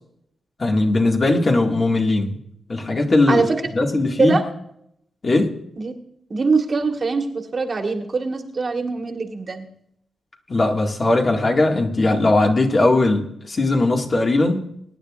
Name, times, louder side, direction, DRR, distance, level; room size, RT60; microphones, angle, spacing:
voice 1, 0.6-2.4 2.7-3.4 3.8-4.4 5.2-5.5 10.5-14.6, left 2 dB, 35° left, 1 dB, 1.9 m, -19 dB
voice 2, 6.3-9.7, right 4 dB, 40° right, 4 dB, 1.6 m, -22 dB
22.5 x 10.5 x 2.5 m, 0.72 s
wide cardioid pair, 110°, 0 cm